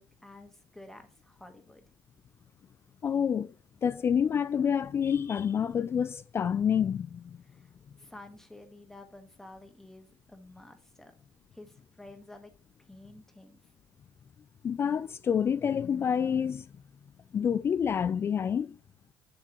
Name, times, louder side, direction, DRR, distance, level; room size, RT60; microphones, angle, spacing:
voice 1, 0.0-2.0 7.4-7.7 8.0-11.1 11.5-12.5 12.8-13.7, left 2 dB, 5° left, 1.4 m, -51 dB
voice 2, 3.0-3.5 3.8-7.4 14.6-16.7 17.3-18.8, left 7 dB, 30° left, 0.3 m, -28 dB
8.7 x 7.5 x 3.0 m
cardioid pair, 130°, 8 cm